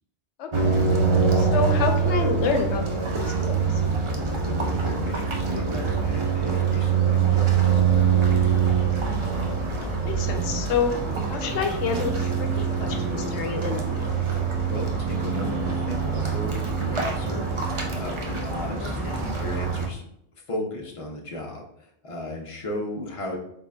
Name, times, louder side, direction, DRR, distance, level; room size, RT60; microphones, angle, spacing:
voice 1, 0.4-0.8 1.4-3.7 9.8-10.9 11.3-14.1 18.8-19.1, left 5 dB, 90° left, 5 dB, 0.9 m, -29 dB
sound 1, 0.5-19.9, right 6 dB, 40° right, 0.5 m, -24 dB
voice 2, 4.3-8.3 14.3-20.0 20.5-23.4, left 1 dB, 35° left, -1 dB, 0.8 m, -35 dB
3.8 x 3.7 x 2.3 m, 0.72 s
omnidirectional pair, 1.1 m